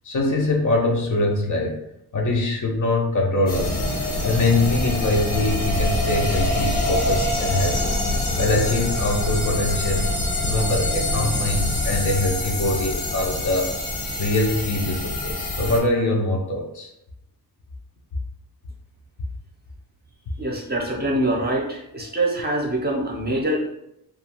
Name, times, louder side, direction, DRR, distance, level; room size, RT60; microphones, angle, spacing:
voice 1, 0.0-1.8 2.1-3.8 4.2-8.0 8.4-10.1 10.4-13.7 14.2-16.9, left 2 dB, 50° left, 0 dB, 0.6 m, -23 dB
sound 1, 3.5-15.8, left 1 dB, 75° left, 1.5 m, -25 dB
voice 2, 20.4-23.7, right 1 dB, 25° right, -1 dB, 0.6 m, -24 dB
2.4 x 2.3 x 2.9 m, 0.80 s
wide cardioid pair, 95°, 39 cm